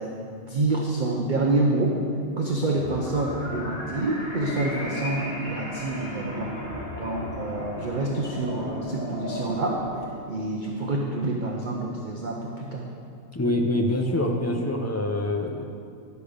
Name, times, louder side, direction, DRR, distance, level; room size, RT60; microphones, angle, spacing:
voice 1, 0.0-2.0 2.4-6.5 6.9-12.8, right 2 dB, 40° right, -1 dB, 0.8 m, -27 dB
sound 1, 2.7-10.0, left 1 dB, 60° left, 3.1 m, -35 dB
voice 2, 13.3-15.6, left 1 dB, 25° left, 2 dB, 0.3 m, -25 dB
11.0 x 6.9 x 5.0 m, 2.3 s
omnidirectional pair, 1.5 m